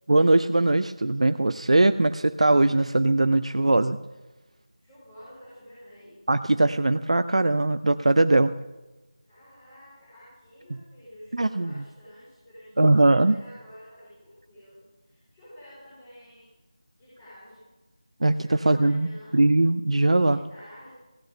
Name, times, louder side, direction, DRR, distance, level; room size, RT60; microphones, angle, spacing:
voice 1, 0.1-4.0 6.3-8.5 11.3-11.8 12.8-13.4 18.2-20.4, right 2 dB, 70° right, 11 dB, 0.5 m, -21 dB
voice 2, 4.8-6.4 9.3-16.5 17.0-17.7 18.4-19.4 20.2-20.9, equal, 15° left, -12 dB, 4.4 m, -49 dB
15.5 x 8.7 x 6.8 m, 1.1 s
figure-of-eight pair, 170°, 3 cm